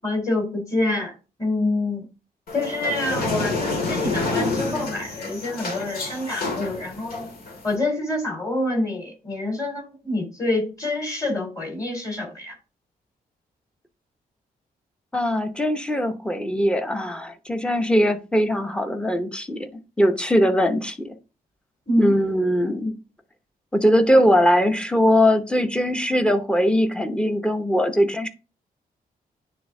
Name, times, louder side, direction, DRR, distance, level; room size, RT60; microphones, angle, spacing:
voice 1, 0.0-1.1 1.4-2.0 2.5-7.3 7.6-12.5 21.9-22.1, left 2 dB, 20° left, 3.0 m, -26 dB
sound 1, 2.5-7.7, left 3 dB, 75° left, 2.1 m, -28 dB
voice 2, 15.1-19.7 20.0-21.2 22.0-23.0 23.7-28.3, equal, 5° left, 0.8 m, -21 dB
9.3 x 3.5 x 3.7 m
wide cardioid pair, 130°, 16 cm